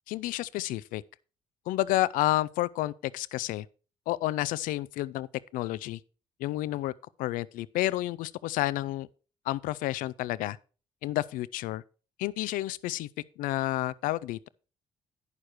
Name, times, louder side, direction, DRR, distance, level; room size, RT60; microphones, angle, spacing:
voice 1, 0.1-1.0 1.7-3.7 4.1-5.3 5.5-6.0 6.4-6.9 7.2-9.1 9.5-10.6 11.0-11.8 12.2-13.1 13.4-14.5, left 16 dB, 75° left, 0.4 m, -30 dB
9.7 x 6.6 x 4.5 m
hypercardioid pair, 55°, 14 cm